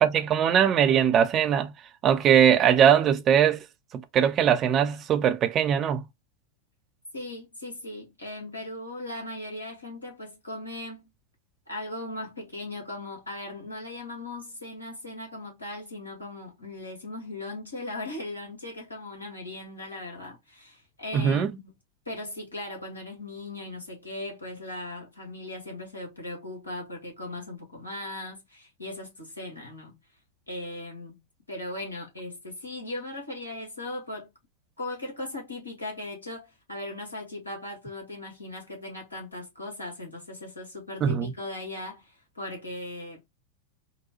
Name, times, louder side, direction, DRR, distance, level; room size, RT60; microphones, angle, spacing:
voice 1, 0.0-1.7 2.0-3.7 3.9-6.1 21.1-21.5 41.0-41.3, right 8 dB, 30° right, 0.5 m, -21 dB
voice 2, 7.1-11.1 11.7-21.7 22.0-30.0 30.5-31.2 31.5-34.3 34.8-43.3, left 2 dB, 80° left, 1.6 m, -38 dB
3.9 x 2.2 x 2.8 m
figure-of-eight pair, 90°, 0 cm